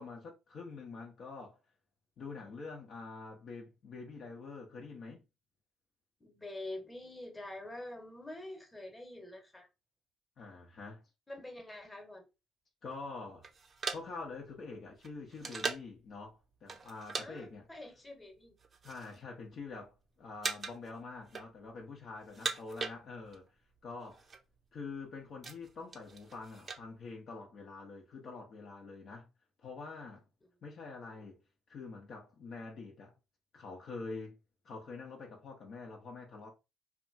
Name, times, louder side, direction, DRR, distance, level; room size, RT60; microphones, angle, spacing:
voice 1, 0.0-1.6 2.2-5.2 10.4-11.0 12.8-13.5 13.9-17.7 18.8-23.5 23.8-24.3 24.7-29.3 29.6-30.2 30.6-31.4 31.7-33.1 33.5-34.4 34.6-36.5, left 4 dB, 55° left, 0.6 m, -46 dB
voice 2, 6.2-9.7 11.3-12.2 17.2-18.5 22.3-22.5, left 1 dB, 15° left, 1.0 m, -46 dB
sound 1, 13.4-16.0 16.7-17.3 17.5-17.8 18.4-19.2 19.5-20.0 20.4-20.9 21.2-21.8 22.2-23.5 23.7-23.8 24.0-24.4 24.9-26.8, right 4 dB, 40° right, 0.5 m, -40 dB
2.8 x 2.3 x 2.5 m
hypercardioid pair, 55°, 0 cm